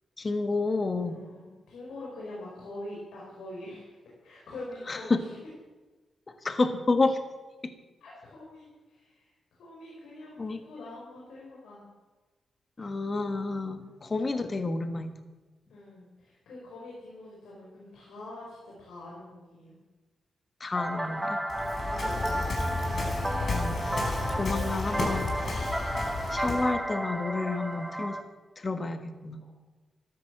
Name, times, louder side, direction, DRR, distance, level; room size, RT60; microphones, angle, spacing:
voice 1, 0.2-1.2 4.9-5.2 6.4-7.2 10.4-10.6 12.8-15.1 20.6-21.4 23.5-23.8 24.3-25.7 26.3-28.2 28.6-29.4, left 3 dB, 35° left, 9 dB, 1.5 m, -30 dB
voice 2, 1.0-5.3 8.0-9.3 9.6-11.9 13.8-13.9 15.7-19.8 21.5-22.5, left 1 dB, 85° left, -5 dB, 4.8 m, -44 dB
sound 1, 20.7-28.2, right 1 dB, 10° right, 1.5 m, -33 dB
Waves surf, 21.5-26.7, left 2 dB, 55° left, 4.5 m, -32 dB
13.5 x 11.5 x 7.6 m, 1.2 s
cardioid pair, 75°, 0 cm